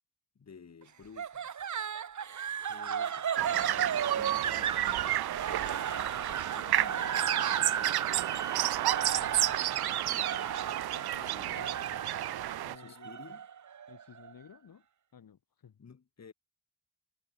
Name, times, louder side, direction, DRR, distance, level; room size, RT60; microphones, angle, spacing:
voice 1, 0.3-1.7 2.7-5.2 5.4-8.0 10.1-11.8 12.7-13.5 15.8-16.3, left 6 dB, 45° left, 3.1 m, -54 dB
sound 1, 1.2-14.3, right 8 dB, 50° right, 1.1 m, -35 dB
sound 2, 3.4-12.8, right 13 dB, 80° right, 0.5 m, -31 dB
voice 2, 9.1-10.1 10.9-12.0 12.6-13.2 13.9-14.8 15.1-15.8, left 8 dB, 65° left, 2.7 m, -55 dB
wide cardioid pair, 160°, 37 cm